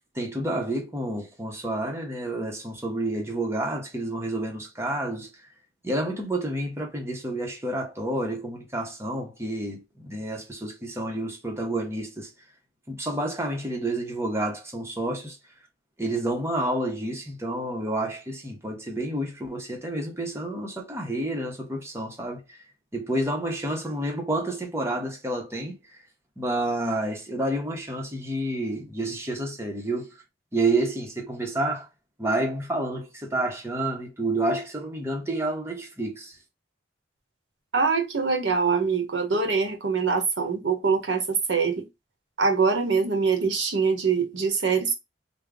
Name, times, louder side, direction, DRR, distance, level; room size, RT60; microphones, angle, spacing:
voice 1, 0.1-5.3 5.8-12.3 12.9-15.4 16.0-22.7 22.9-26.0 26.4-30.2 30.5-31.9 32.2-36.4, right 1 dB, 15° right, 0.9 m, -29 dB
voice 2, 37.7-41.9 42.4-44.9, right 5 dB, 75° right, 1.1 m, -24 dB
3.5 x 2.3 x 3.6 m
head